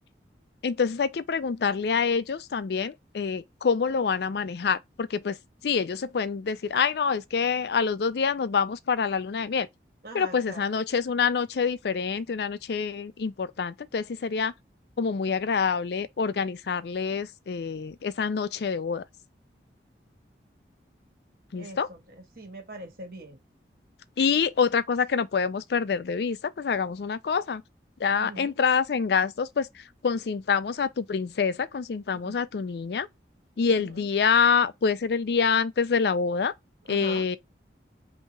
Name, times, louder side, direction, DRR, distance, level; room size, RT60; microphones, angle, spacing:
voice 1, 0.6-5.4 5.6-9.7 10.1-14.5 15.0-19.0 21.5-21.9 24.2-27.6 28.0-33.1 33.6-36.5 36.9-37.4, left 6 dB, 70° left, 0.4 m, -26 dB
voice 2, 10.0-10.6 21.6-23.4 28.1-28.5 32.1-32.3 33.7-34.1 36.9-37.3, right 1 dB, 55° right, 1.6 m, -42 dB
5.5 x 2.8 x 2.3 m
head